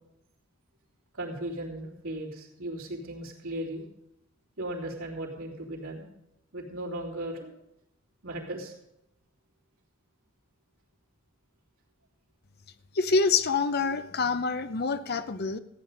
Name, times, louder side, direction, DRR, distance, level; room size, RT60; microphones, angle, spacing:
voice 1, 1.1-3.9 4.6-6.1 6.5-7.5 8.2-8.7, right 1 dB, 85° right, -3 dB, 3.5 m, -36 dB
voice 2, 12.9-15.6, left 4 dB, 50° left, 12 dB, 0.7 m, -26 dB
15.0 x 9.4 x 5.2 m, 0.82 s
head